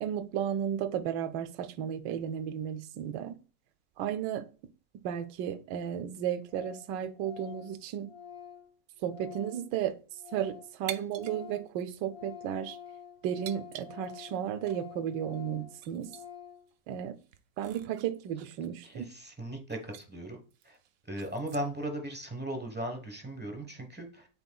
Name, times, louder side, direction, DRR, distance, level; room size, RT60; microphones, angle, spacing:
voice 1, 0.0-3.4 4.0-4.5 5.0-8.1 9.0-10.0 10.3-12.8 13.2-16.1 16.9-17.2 17.6-19.1, right 9 dB, 90° right, 1.3 m, -34 dB
Organ, 5.5-5.6 5.8-5.9 6.1-6.2 6.5-6.9 7.2-10.8 11.0-16.7, left 8 dB, 30° left, 0.6 m, -48 dB
sound 1, 10.9-11.4 11.7-11.8 12.5-12.8 13.4-14.4 14.7-14.8 15.3-15.4 15.8-16.3 16.7-16.8 17.2-19.3 19.7-20.1 20.5-21.8, right 11 dB, 70° right, 0.9 m, -46 dB
voice 2, 18.8-20.4 20.6-20.8 21.1-24.3, right 1 dB, 10° right, 0.7 m, -37 dB
10.5 x 4.1 x 2.3 m
omnidirectional pair, 1.9 m